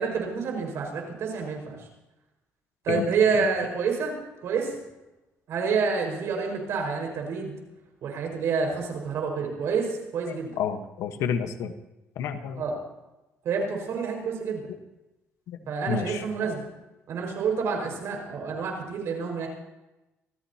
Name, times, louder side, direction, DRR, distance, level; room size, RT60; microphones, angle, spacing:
voice 1, 0.0-1.8 2.8-4.1 4.4-4.8 5.5-7.5 8.0-10.6 12.6-12.8 13.4-14.7 15.7-16.7 17.1-19.5, right 5 dB, 65° right, 2 dB, 5.3 m, -28 dB
voice 2, 10.3-11.7 12.2-12.6 15.5-15.6 15.9-16.2, left 7 dB, 80° left, 8 dB, 1.2 m, -30 dB
25.5 x 15.0 x 2.9 m, 0.99 s
cardioid pair, 120°, 5 cm